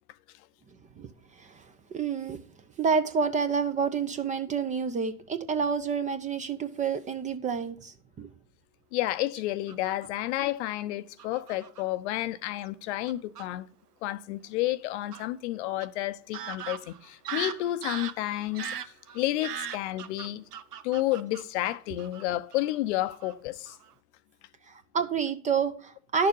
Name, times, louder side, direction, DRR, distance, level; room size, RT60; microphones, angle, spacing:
voice 1, 1.9-2.4 2.8-8.3 24.7-26.3, right 5 dB, 15° right, 0.7 m, -29 dB
voice 2, 8.9-13.7 14.0-18.7 19.1-20.4 20.8-23.8, left 15 dB, 50° left, 0.8 m, -31 dB
Fowl / Bird vocalization bird call bird song, 9.7-10.4 11.2-11.8 12.7-12.8 13.1-13.5 15.1-15.3 15.8-15.9 16.3-22.2 22.5-22.8 23.1-23.3 23.7-23.9, right 8 dB, 90° right, 0.9 m, -39 dB
11.0 x 6.7 x 5.4 m
hypercardioid pair, 110°, 45 cm